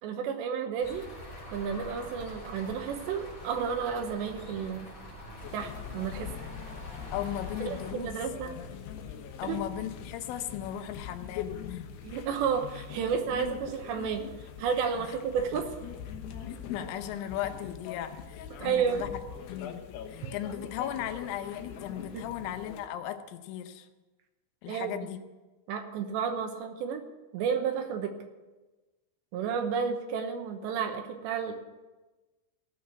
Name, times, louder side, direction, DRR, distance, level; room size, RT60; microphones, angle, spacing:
voice 1, 0.0-1.1 1.5-4.9 5.5-6.3 7.6-8.5 9.4-9.6 12.0-14.2 14.6-15.8 18.6-19.0 22.1-22.3 24.7-25.0 25.7-27.0 27.3-28.1 29.3-31.6, right 6 dB, 75° right, 6 dB, 2.9 m, -31 dB
sound 1, 0.8-7.9, left 1 dB, 20° left, 3.0 m, -45 dB
sound 2, 5.4-22.9, left 8 dB, 70° left, 2.9 m, -42 dB
voice 2, 7.1-8.1 8.4-8.7 9.4-11.9 15.0-15.1 16.5-19.1 19.5-19.8 20.1-23.9 24.6-25.2, left 11 dB, 85° left, 8 dB, 3.4 m, -37 dB
16.0 x 6.4 x 9.5 m, 1.2 s
omnidirectional pair, 5.6 m